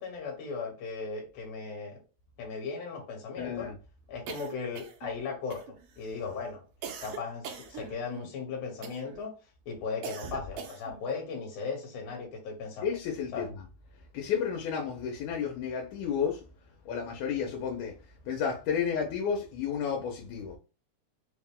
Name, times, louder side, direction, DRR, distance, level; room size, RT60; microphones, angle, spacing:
voice 1, 0.0-2.0 2.4-3.7 4.1-6.6 7.0-9.4 9.7-12.9 13.3-13.5, left 5 dB, 70° left, 2.3 m, -37 dB
voice 2, 3.4-3.8 6.2-6.3 12.8-13.7 14.1-16.4 16.9-18.0 18.3-20.6, left 7 dB, 90° left, 2.1 m, -32 dB
sound 1, 4.3-5.2 5.5-6.0 6.8-8.3 8.8-9.2 10.0-11.0, right 6 dB, 85° right, 1.2 m, -42 dB
4.9 x 2.1 x 3.5 m
omnidirectional pair, 3.3 m